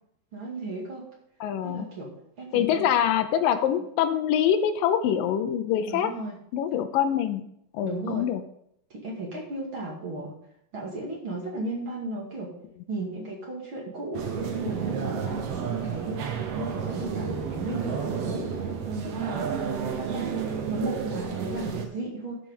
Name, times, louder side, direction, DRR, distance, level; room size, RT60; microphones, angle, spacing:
voice 1, 0.3-1.0 1.6-2.1 2.4-2.9 5.9-6.4 7.8-8.3 8.9-10.3 10.7-12.6 12.9-14.3 14.5-16.2 16.5-18.5 18.8-19.6 19.9-20.3 20.7-22.4, right 2 dB, 40° right, -3 dB, 2.7 m, -35 dB
voice 2, 1.4-1.9 2.5-6.1 6.5-7.4 7.7-8.4, left 9 dB, 80° left, 9 dB, 2.4 m, -24 dB
sound 1, 14.1-21.9, right 6 dB, 60° right, 1.9 m, -31 dB
12.5 x 5.8 x 5.5 m, 0.74 s
omnidirectional pair, 4.0 m